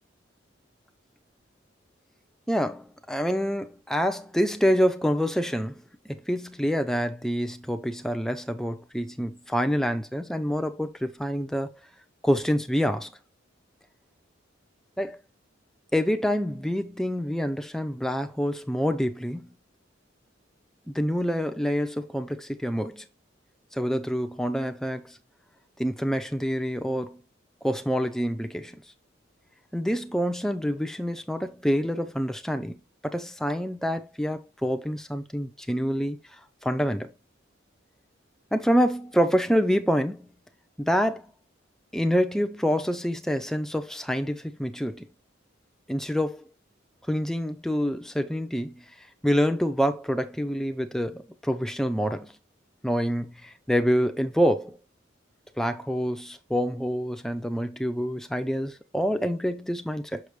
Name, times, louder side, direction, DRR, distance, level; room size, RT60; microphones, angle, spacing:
voice 1, 2.5-11.7 12.2-13.1 15.0-15.2 15.9-19.5 20.9-23.1 23.7-25.2 25.8-27.2 27.6-28.8 29.7-32.8 33.0-36.2 36.6-37.1 38.5-40.3 40.8-41.3 41.9-45.1 45.9-46.4 47.1-48.8 49.2-52.3 52.8-54.8 55.6-60.2, equal, ahead, 0.7 m, -27 dB
6.5 x 6.3 x 3.2 m
head